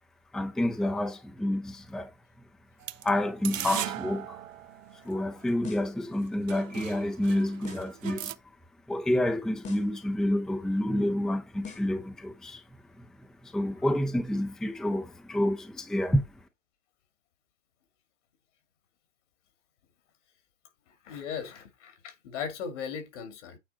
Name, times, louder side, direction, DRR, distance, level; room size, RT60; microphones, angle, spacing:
voice 1, 0.3-2.1 3.0-4.3 5.0-8.3 8.9-12.6 13.0-13.1 13.4-16.2, left 1 dB, ahead, 0.6 m, -28 dB
sound 1, 2.8-5.5 6.1-6.2 6.5-8.3, right 11 dB, 85° right, 0.7 m, -38 dB
sound 2, 5.6-6.0 7.6-8.0 9.6-10.0 11.6-12.0, left 7 dB, 20° left, 1.2 m, -44 dB
voice 2, 21.0-23.6, left 7 dB, 65° left, 2.3 m, -37 dB
9.0 x 3.6 x 4.2 m
hypercardioid pair, 110°, 38 cm